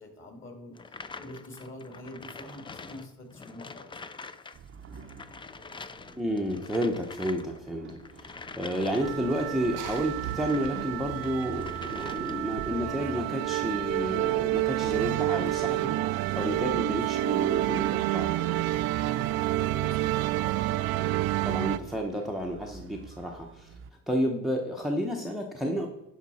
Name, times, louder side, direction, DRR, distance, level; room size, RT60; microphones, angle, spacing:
voice 1, 0.0-4.0 16.7-17.0 19.4-20.1, left 1 dB, 35° left, 4 dB, 2.3 m, -45 dB
sound 1, 0.7-10.7 11.1-12.6, left 4 dB, 15° left, 0.3 m, -45 dB
sound 2, 4.5-23.9, right 5 dB, 35° right, 0.7 m, -48 dB
voice 2, 6.0-18.3 21.0-23.7 24.1-25.9, equal, ahead, 2 dB, 0.8 m, -31 dB
sound 3, 9.0-21.8, right 16 dB, 75° right, 0.5 m, -29 dB
11.0 x 5.1 x 4.2 m, 0.92 s
cardioid pair, 110°, 36 cm